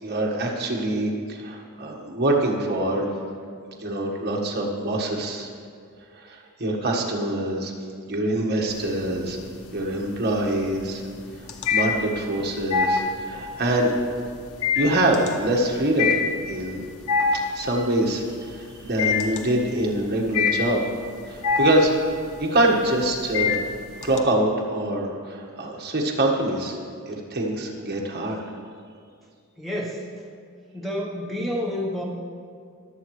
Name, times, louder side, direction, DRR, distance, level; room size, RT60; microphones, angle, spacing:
voice 1, 0.0-3.1 3.8-5.5 6.1-7.7 8.1-9.4 9.7-11.0 11.7-13.9 14.7-16.1 16.5-16.8 17.5-20.8 21.2-21.9 22.4-23.6 24.0-26.8 27.1-28.4, right 1 dB, 50° right, -1 dB, 1.6 m, -24 dB
sound 1, 8.7-9.3 9.7-24.2, left 5 dB, 80° left, 0.9 m, -25 dB
voice 2, 29.6-30.0 30.7-32.0, left 1 dB, ahead, -3 dB, 1.0 m, -29 dB
21.0 x 8.0 x 3.2 m, 2.2 s
head